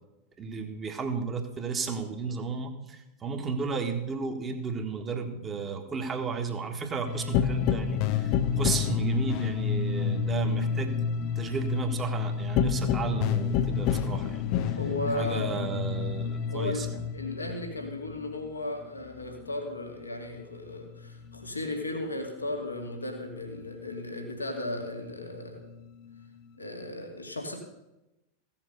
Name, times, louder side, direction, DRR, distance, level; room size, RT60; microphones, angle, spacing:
voice 1, 0.4-11.0 11.3-14.4 15.1-16.9, right 5 dB, 20° right, 5 dB, 1.6 m, -33 dB
sound 1, 7.1-20.1 20.4-22.3 22.6-24.3 24.7-26.5, left 7 dB, 45° left, 0.6 m, -30 dB
voice 2, 14.8-15.5 16.5-16.9 17.1-25.7 26.6-27.6, left 1 dB, 80° left, 3 dB, 2.1 m, -35 dB
15.5 x 7.5 x 6.6 m, 0.95 s
figure-of-eight pair, 90°, 0 cm